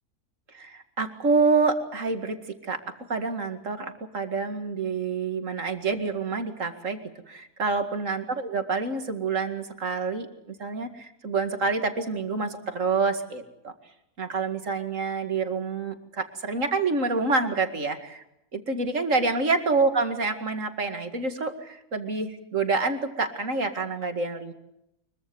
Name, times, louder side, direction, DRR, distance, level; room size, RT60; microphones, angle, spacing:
voice 1, 0.5-2.4 2.6-7.0 7.3-10.3 10.6-13.7 14.2-18.2 18.5-24.5, right 4 dB, 55° right, 7 dB, 2.5 m, -27 dB
24.5 x 23.0 x 7.1 m, 0.84 s
omnidirectional pair, 1.6 m